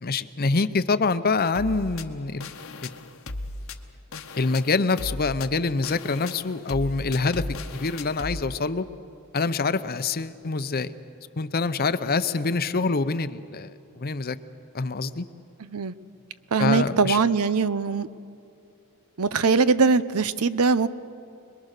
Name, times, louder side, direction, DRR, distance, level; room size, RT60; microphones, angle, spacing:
voice 1, 0.0-2.5 2.8-2.9 4.4-7.5 7.7-8.8 9.3-10.9 11.4-14.4 14.7-15.3 16.6-17.2, left 4 dB, 45° left, 13 dB, 0.7 m, -25 dB
sound 1, 1.5-8.4, left 2 dB, 65° left, 1.1 m, -36 dB
voice 2, 15.6-15.9 16.5-18.1 19.2-20.9, right 4 dB, 90° right, 15 dB, 0.7 m, -21 dB
26.5 x 21.5 x 6.6 m, 2.5 s
head